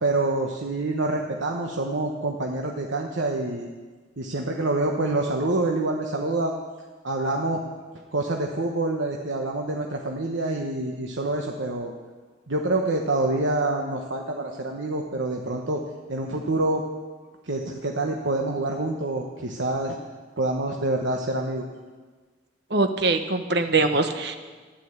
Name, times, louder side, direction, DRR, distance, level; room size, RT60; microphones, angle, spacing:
voice 1, 0.0-3.7 4.2-6.5 7.0-7.6 8.1-11.9 12.5-15.8 16.1-16.8 17.4-20.0 20.4-21.6, right 2 dB, 85° right, 1 dB, 1.2 m, -26 dB
voice 2, 22.7-24.4, right 3 dB, 60° right, 7 dB, 1.2 m, -22 dB
13.0 x 11.5 x 8.1 m, 1.4 s
head